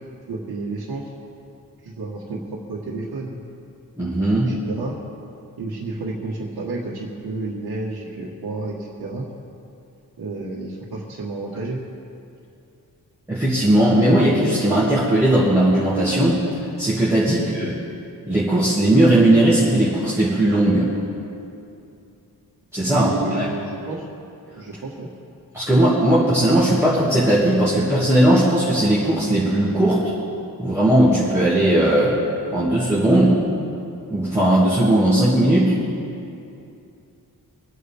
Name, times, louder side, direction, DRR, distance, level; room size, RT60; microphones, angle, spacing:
voice 1, 0.3-1.1 1.8-3.4 4.5-4.9 5.6-9.2 10.2-11.8 17.3-17.6 22.9-24.0 24.6-25.1, right 3 dB, 90° right, -6 dB, 1.6 m, -31 dB
voice 2, 4.0-4.5 13.3-16.4 16.8-17.7 18.3-20.9 22.7-23.4 25.5-30.0 30.6-32.2 32.5-33.4 34.1-35.7, right 1 dB, 5° right, -10 dB, 2.3 m, -18 dB
25.5 x 8.6 x 3.6 m, 2.6 s
wide cardioid pair, 115°, 37 cm